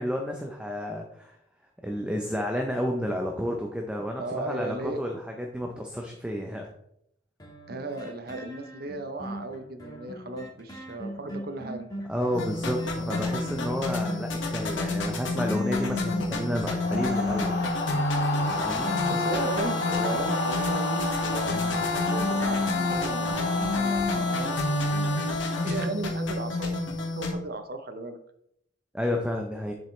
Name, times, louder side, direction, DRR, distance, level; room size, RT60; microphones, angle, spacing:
voice 1, 0.0-1.3 1.8-6.7 12.1-17.7 18.6-18.9 28.9-29.7, equal, 5° right, 2 dB, 0.6 m, -31 dB
voice 2, 4.2-5.0 7.7-11.9 19.0-24.6 25.6-28.2, right 2 dB, 50° right, 9 dB, 0.8 m, -36 dB
sound 1, 7.4-26.1 26.5-26.6, right 1 dB, 20° left, 1.7 m, -42 dB
sound 2, 12.3-27.3, left 2 dB, 80° left, 1.7 m, -28 dB
sound 3, 16.8-25.9, left 2 dB, 55° left, 1.3 m, -33 dB
7.8 x 7.3 x 3.2 m, 0.76 s
head